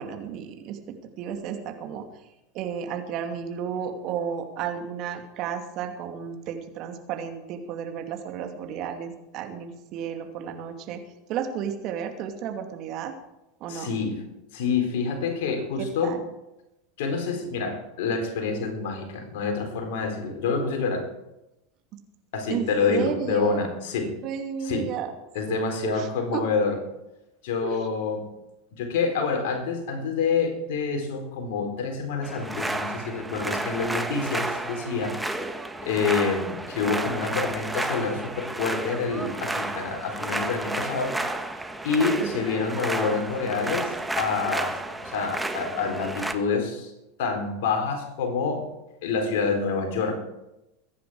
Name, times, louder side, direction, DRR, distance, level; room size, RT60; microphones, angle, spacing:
voice 1, 0.0-2.0 2.5-11.0 11.3-13.1 13.6-13.9 15.8-16.2 22.5-23.7 24.2-25.1 25.5-26.4 27.6-27.8 42.2-42.4, right 8 dB, 50° right, 5 dB, 2.5 m, -32 dB
voice 2, 13.7-14.2 14.5-16.2 17.0-21.1 22.3-24.1 24.6-24.9 25.3-26.8 27.4-28.3 28.7-35.2 35.8-41.2 41.8-46.9 47.2-48.7 49.0-50.2, left 5 dB, 65° left, 4 dB, 4.0 m, -27 dB
sound 1, 32.2-46.3, right 2 dB, 5° right, 1.5 m, -31 dB
23.0 x 10.5 x 4.9 m, 0.91 s
hypercardioid pair, 85°, 0 cm